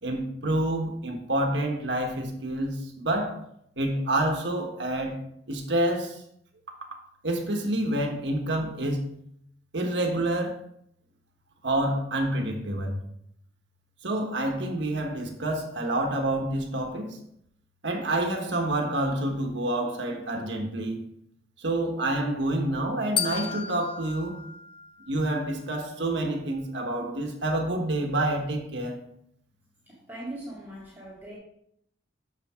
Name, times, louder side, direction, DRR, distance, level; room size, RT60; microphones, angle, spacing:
voice 1, 0.0-3.4 3.8-5.2 5.5-6.2 7.2-9.0 9.7-10.6 11.6-13.0 14.0-17.2 17.8-21.0 21.6-24.4 25.1-28.9, right 1 dB, 65° right, 3 dB, 1.4 m, -28 dB
sound 1, 23.2-25.4, left 7 dB, 25° left, 0.4 m, -33 dB
voice 2, 29.9-31.4, right 1 dB, 10° right, -7 dB, 2.0 m, -40 dB
7.3 x 6.8 x 3.7 m, 0.72 s
head